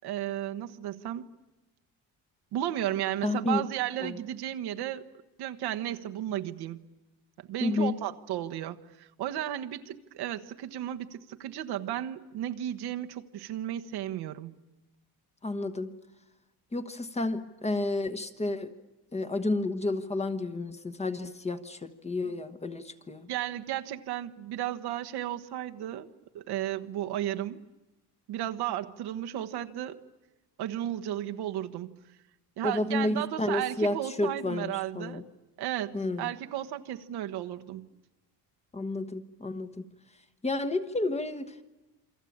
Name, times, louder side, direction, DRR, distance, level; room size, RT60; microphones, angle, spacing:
voice 1, 0.0-1.3 2.5-5.0 5.4-6.9 7.5-14.6 22.2-22.3 23.3-26.1 26.3-27.6 28.3-30.0 30.6-32.0 32.6-35.2 35.6-37.9, right 12 dB, 65° right, 7 dB, 1.4 m, -34 dB
voice 2, 3.2-3.6 4.0-4.2 7.6-8.0 15.4-15.9 16.7-18.7 19.1-23.3 32.6-35.2 35.9-36.3 38.7-39.8 40.4-41.5, left 2 dB, 15° left, 8 dB, 1.3 m, -31 dB
28.0 x 23.5 x 8.7 m, 1.0 s
cardioid pair, 145°, 42 cm